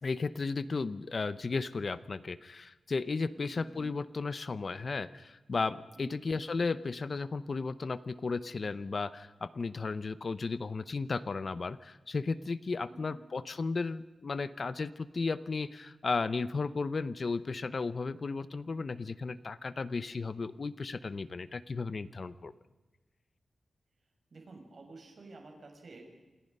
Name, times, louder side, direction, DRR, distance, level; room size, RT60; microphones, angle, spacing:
voice 1, 0.0-22.5, left 4 dB, 40° left, 14 dB, 0.7 m, -34 dB
voice 2, 24.3-26.0, right 3 dB, 50° right, 3 dB, 6.3 m, -51 dB
28.5 x 27.5 x 5.4 m, 1.2 s
wide cardioid pair, 180°, 0 cm